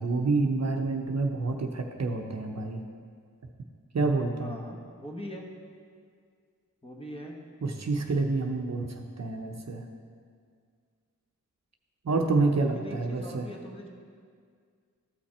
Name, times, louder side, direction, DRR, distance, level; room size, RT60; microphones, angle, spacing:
voice 1, 0.0-2.8 3.9-4.6 7.6-9.9 12.0-13.5, right 3 dB, 55° right, 3 dB, 0.8 m, -28 dB
voice 2, 4.4-5.5 6.8-7.4 12.7-13.9, equal, 20° left, -1 dB, 1.3 m, -41 dB
13.5 x 5.7 x 4.3 m, 2.1 s
wide cardioid pair, 75°, 32 cm